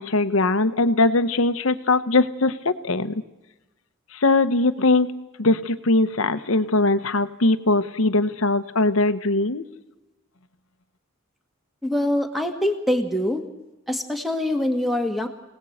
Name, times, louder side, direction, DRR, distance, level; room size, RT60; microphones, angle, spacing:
voice 1, 0.0-3.2 4.1-5.1 5.4-9.6, left 2 dB, 75° left, 11 dB, 1.1 m, -21 dB
voice 2, 11.8-13.4 13.9-15.3, left 1 dB, ahead, 5 dB, 1.8 m, -24 dB
25.0 x 18.0 x 8.0 m, 1.0 s
head